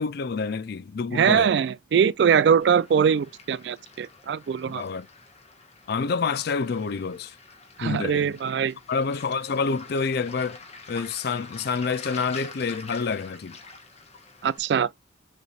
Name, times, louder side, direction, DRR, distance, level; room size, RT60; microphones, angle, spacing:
voice 1, 0.0-1.5 4.7-5.1 5.9-7.4 7.8-8.4 8.9-10.6 10.9-13.6, left 5 dB, 55° left, 0.4 m, -28 dB
voice 2, 1.1-4.8 7.8-8.7 14.4-14.9, right 7 dB, 65° right, 0.3 m, -22 dB
Waves surf, 2.6-14.6, left 3 dB, 35° left, 1.3 m, -46 dB
6.6 x 3.3 x 2.3 m
head